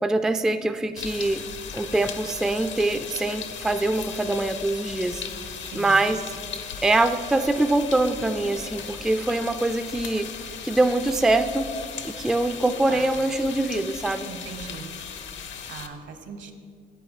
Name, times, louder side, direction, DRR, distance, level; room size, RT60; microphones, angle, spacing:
voice 1, 0.0-1.4 1.7-5.2 5.7-6.2 6.8-10.3 10.6-11.7 12.0-14.3, right 2 dB, 5° right, 9 dB, 0.3 m, -24 dB
sound 1, 1.0-15.9, left 7 dB, 70° left, 0.8 m, -37 dB
voice 2, 5.6-6.1 12.9-13.1 14.2-14.9 15.3-16.5, right 5 dB, 70° right, 7 dB, 1.1 m, -40 dB
9.1 x 7.6 x 4.8 m, 2.3 s
cardioid pair, 90°, 20 cm